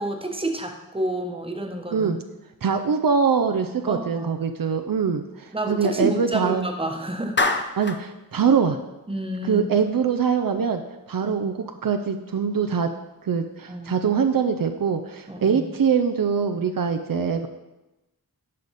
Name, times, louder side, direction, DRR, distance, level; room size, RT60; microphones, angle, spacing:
voice 1, 0.0-2.1 3.9-4.3 5.5-7.4 9.1-9.7 11.2-11.3 13.7-13.9 15.3-15.6, right 1 dB, 15° right, 4 dB, 1.0 m, -29 dB
voice 2, 2.6-6.7 7.8-8.8 9.4-10.8 11.1-12.9 13.2-17.5, right 6 dB, 70° right, 6 dB, 0.6 m, -23 dB
Clapping, 7.4-8.1, left 3 dB, 30° left, 0.7 m, -24 dB
11.0 x 5.1 x 4.1 m, 1.0 s
wide cardioid pair, 85°, 35 cm